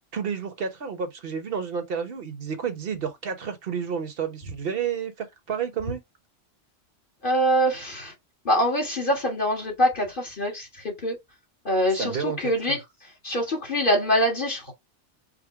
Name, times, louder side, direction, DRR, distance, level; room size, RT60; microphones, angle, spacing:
voice 1, 0.1-6.0 11.9-12.8, right 7 dB, 55° right, 1.2 m, -31 dB
voice 2, 7.2-8.1 8.5-11.2 11.7-12.8 13.2-14.7, equal, 45° left, 1.7 m, -24 dB
5.1 x 2.1 x 4.7 m
omnidirectional pair, 1.2 m